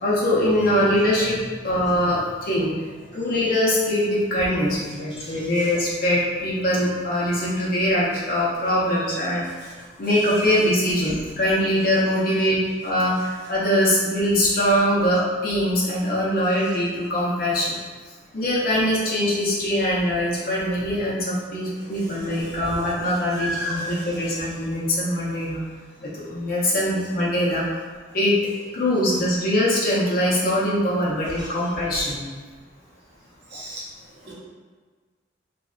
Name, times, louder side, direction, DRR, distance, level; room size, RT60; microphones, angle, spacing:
voice 1, 0.0-2.7 3.1-9.7 10.0-17.8 18.3-25.6 26.0-27.7 28.1-28.3 28.7-32.2 33.5-33.6, equal, 50° left, -6 dB, 0.6 m, -22 dB
voice 2, 23.4-23.8 33.5-33.8 34.2-34.3, equal, 65° right, -7 dB, 0.8 m, -31 dB
2.6 x 2.1 x 2.3 m, 1.5 s
head